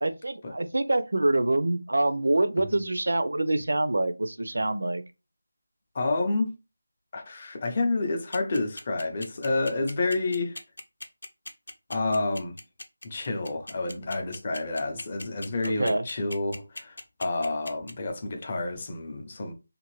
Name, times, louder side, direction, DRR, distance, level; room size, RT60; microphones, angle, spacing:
voice 1, 0.0-5.0 15.6-16.0, right 2 dB, 75° right, 0.5 m, -26 dB
voice 2, 5.9-6.5 7.1-10.6 11.9-12.6 13.0-19.5, left 2 dB, 30° left, 0.6 m, -29 dB
sound 1, 8.3-17.9, left 1 dB, 85° left, 0.7 m, -39 dB
2.7 x 2.5 x 3.1 m
figure-of-eight pair, 170°, 0 cm